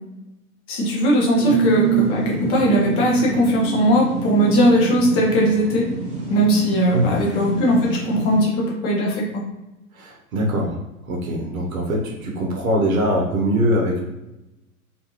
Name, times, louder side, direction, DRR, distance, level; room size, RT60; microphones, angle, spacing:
voice 1, 0.7-5.8 6.3-9.4, equal, 15° left, -3 dB, 0.3 m, -19 dB
sound 1, 1.4-8.4, right 5 dB, 15° right, 0.7 m, -25 dB
voice 2, 9.9-10.8 11.1-14.0, equal, 70° right, 0 dB, 0.8 m, -22 dB
2.5 x 2.4 x 2.9 m, 0.97 s
figure-of-eight pair, 100°, 43 cm